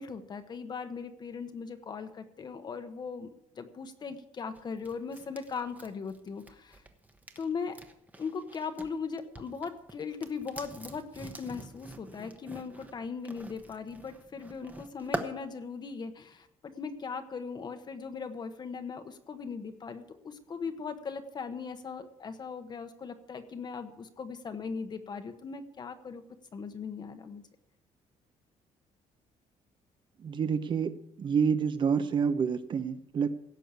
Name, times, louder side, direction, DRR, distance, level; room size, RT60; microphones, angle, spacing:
voice 1, 0.0-6.8 7.4-7.8 8.2-26.2 26.5-27.4, left 5 dB, 35° left, 8 dB, 1.0 m, -39 dB
sound 1, 4.5-8.9 9.2-15.3, right 2 dB, 10° right, 1.0 m, -44 dB
voice 2, 30.2-30.9 31.2-33.3, right 6 dB, 40° right, 11 dB, 0.9 m, -28 dB
17.0 x 6.4 x 8.2 m, 0.77 s
cardioid pair, 155°, 13 cm